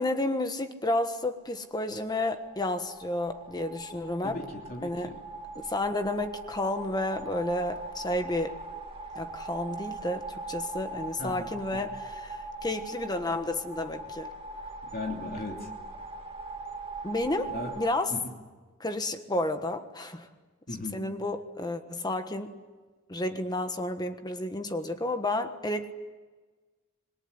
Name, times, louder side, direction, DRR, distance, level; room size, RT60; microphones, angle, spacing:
voice 1, 0.0-4.4 4.8-5.1 5.6-8.6 9.1-14.3 17.0-18.1 18.8-20.3 20.9-22.5 23.1-25.9, left 1 dB, 20° left, 8 dB, 1.4 m, -31 dB
sound 1, 2.1-18.0, right 2 dB, 25° right, 2.2 m, -41 dB
voice 2, 4.2-5.2 11.2-11.9 14.9-15.7 17.5-17.7 18.1-18.3 20.7-21.0, left 2 dB, 45° left, 1 dB, 3.0 m, -37 dB
26.5 x 21.5 x 9.8 m, 1.3 s
head